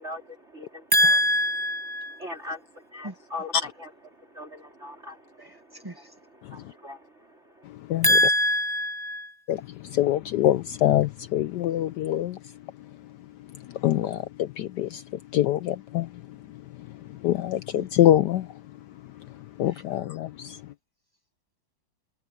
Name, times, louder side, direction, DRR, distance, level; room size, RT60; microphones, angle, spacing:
voice 1, 0.0-0.9 2.2-7.6, left 2 dB, 30° right, 4.4 m, -41 dB
voice 2, 0.9-2.2 3.0-3.1 5.8-5.9 8.0-9.4 17.8-17.9, equal, 15° right, 0.8 m, -23 dB
voice 3, 10.0-12.3 13.8-14.2 14.6-14.9 15.3-16.1 17.2-18.4 19.6-20.3, left 13 dB, 75° left, 1.0 m, -23 dB
omnidirectional pair, 2.2 m